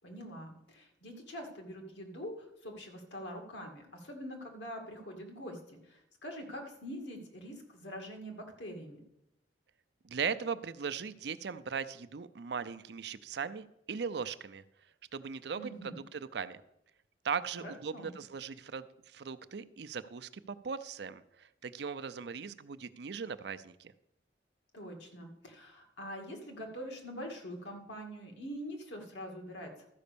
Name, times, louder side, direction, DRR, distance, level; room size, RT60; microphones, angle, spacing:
voice 1, 0.0-9.0 15.6-16.0 17.6-18.2 24.7-29.9, equal, 80° left, 2 dB, 2.2 m, -44 dB
voice 2, 10.0-14.6 15.1-16.6 17.2-23.9, right 6 dB, 65° right, 13 dB, 0.5 m, -39 dB
13.0 x 5.3 x 6.8 m, 0.81 s
head